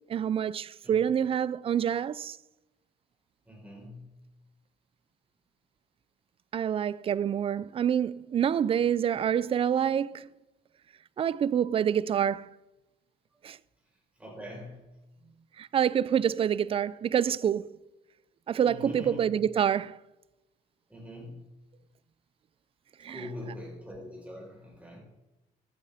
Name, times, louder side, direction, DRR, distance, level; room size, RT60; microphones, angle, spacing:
voice 1, 0.1-2.4 6.5-10.3 11.2-12.5 13.4-13.6 15.6-17.7 18.5-20.0 23.0-23.3, right 9 dB, 35° right, 0.4 m, -27 dB
voice 2, 3.5-4.2 13.3-13.4 14.2-14.9 18.6-19.3 20.9-21.5 23.1-25.0, left 1 dB, 10° right, 4.4 m, -43 dB
14.0 x 9.2 x 3.5 m
cardioid pair, 110°, 17 cm